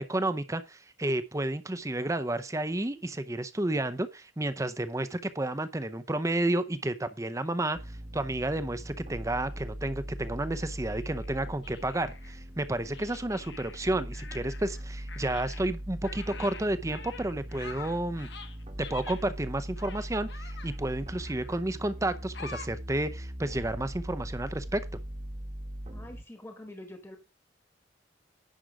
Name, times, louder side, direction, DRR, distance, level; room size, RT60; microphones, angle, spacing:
voice 1, 0.0-7.8 8.1-18.3 18.9-24.8, right 1 dB, 15° right, 0.6 m, -31 dB
sound 1, 7.7-26.2, equal, 30° right, 1.3 m, -40 dB
sound 2, 10.9-12.4 12.9-14.8 15.1-19.2 19.8-20.8 21.2-21.7 22.3-22.7, left 5 dB, 65° left, 1.3 m, -47 dB
voice 2, 25.9-27.2, left 1 dB, 15° left, 1.3 m, -45 dB
10.5 x 6.2 x 4.8 m
head